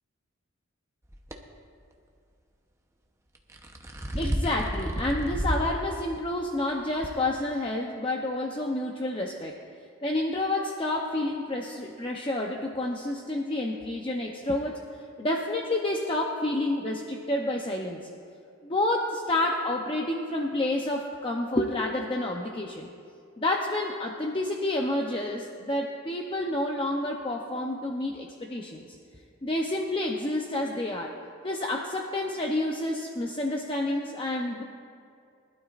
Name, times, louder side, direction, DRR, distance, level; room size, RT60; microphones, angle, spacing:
sound 1, 1.1-1.4 3.3-5.7 6.2-6.3 7.0-7.1, equal, 15° right, 0.8 m, -31 dB
voice 1, 4.2-9.6 10.0-14.8 15.2-18.1 18.6-22.9 23.4-28.9 29.4-31.2 31.4-34.6, left 1 dB, 25° left, 0 dB, 0.7 m, -29 dB
23.5 x 12.0 x 2.5 m, 2.4 s
head